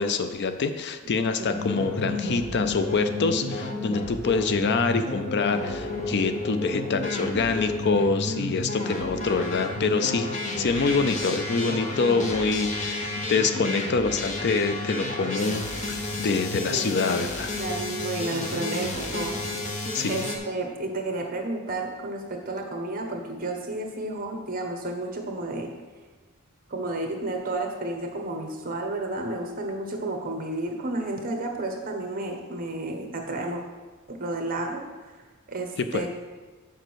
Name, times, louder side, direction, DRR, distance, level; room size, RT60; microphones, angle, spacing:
voice 1, 0.0-17.5 19.9-20.2 35.8-36.1, left 4 dB, 50° left, 9 dB, 0.5 m, -26 dB
voice 2, 1.0-1.9 16.7-17.0 17.6-19.4 20.1-25.7 26.7-33.6 34.1-35.1 35.5-36.1, right 2 dB, 40° right, 2 dB, 1.1 m, -32 dB
sound 1, 1.5-20.4, left 2 dB, 35° left, 1.0 m, -31 dB
6.6 x 5.3 x 6.3 m, 1.3 s
head